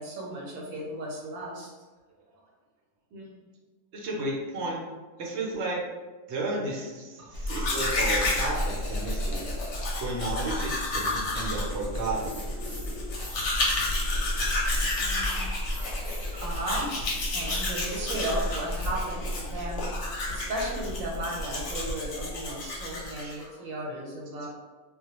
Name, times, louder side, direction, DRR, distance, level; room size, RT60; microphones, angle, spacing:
voice 1, 0.0-1.7 15.0-15.4 16.4-16.9 17.3-19.9 20.3-24.5, right 1 dB, 85° right, -2 dB, 1.1 m, -35 dB
voice 2, 3.9-4.8 5.2-5.8 6.3-9.5 10.0-12.3 14.6-14.8 15.2-15.4 15.8-15.9 16.2-16.4 17.4-17.6 19.6-19.7 20.3-20.5 23.2-23.7, right 2 dB, 65° right, -2 dB, 0.8 m, -33 dB
Domestic sounds home sounds, 7.3-23.4, left 1 dB, 65° left, 0.8 m, -30 dB
sound 1, 10.7-11.2 12.1-13.9 14.7-16.3 16.8-17.7, left 1 dB, 5° right, 0.5 m, -45 dB
2.2 x 2.1 x 2.9 m, 1.2 s
omnidirectional pair, 1.4 m